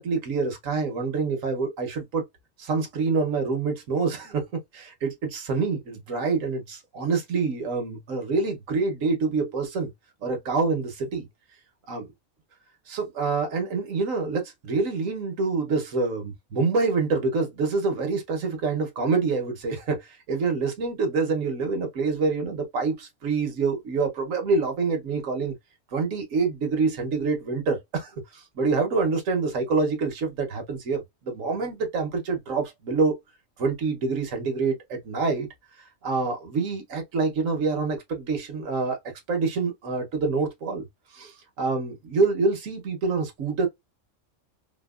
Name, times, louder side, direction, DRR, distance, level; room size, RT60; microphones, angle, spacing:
voice 1, 0.0-2.3 2.6-4.4 4.7-9.9 10.2-11.3 11.9-12.1 12.9-25.5 25.9-33.2 33.6-35.5 36.0-39.0 39.3-40.8 41.1-43.7, right 4 dB, 85° right, 1.3 m, -26 dB
4.4 x 2.1 x 2.3 m
omnidirectional pair, 1.3 m